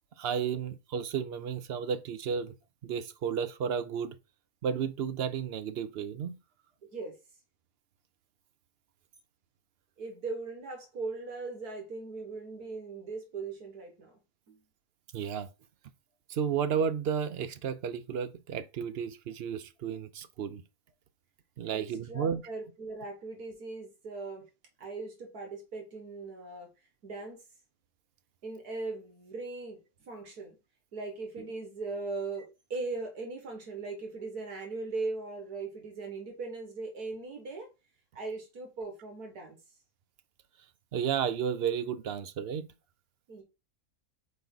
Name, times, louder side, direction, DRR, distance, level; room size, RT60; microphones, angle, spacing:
voice 1, 0.2-2.5 2.8-4.1 4.6-6.4 15.1-15.5 16.3-20.6 21.6-22.4 40.9-42.7, right 7 dB, 60° right, 0.7 m, -32 dB
voice 2, 10.0-14.2 14.5-14.6 21.7-24.5 24.8-26.7 27.0-27.4 28.4-30.6 30.9-37.7 38.1-39.6 43.3-43.4, right 3 dB, 75° right, 2.1 m, -39 dB
5.2 x 4.5 x 4.0 m
omnidirectional pair, 1.6 m